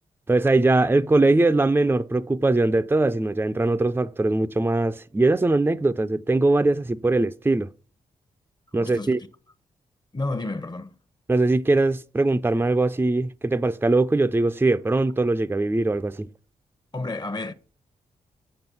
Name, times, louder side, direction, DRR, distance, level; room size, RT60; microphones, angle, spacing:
voice 1, 0.3-7.7 8.7-9.2 11.3-16.3, right 2 dB, 15° right, 0.5 m, -21 dB
voice 2, 8.8-9.1 10.1-10.9 16.9-17.5, left 2 dB, 30° left, 1.0 m, -30 dB
7.8 x 5.2 x 6.9 m
supercardioid pair, 45°, 15 cm